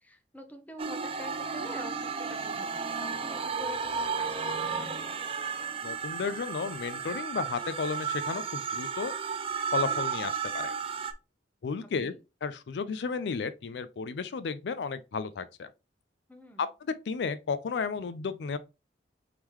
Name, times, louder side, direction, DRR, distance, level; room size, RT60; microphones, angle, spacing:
voice 1, 0.0-5.0 12.0-12.2 16.3-16.7, equal, 10° left, 0.8 m, -46 dB
sound 1, 0.8-11.1, right 6 dB, 35° right, 0.5 m, -33 dB
voice 2, 5.8-9.1 9.7-10.7 11.6-12.1 12.4-15.7 16.6-18.6, left 5 dB, 75° left, 0.4 m, -33 dB
4.8 x 3.6 x 3.0 m
head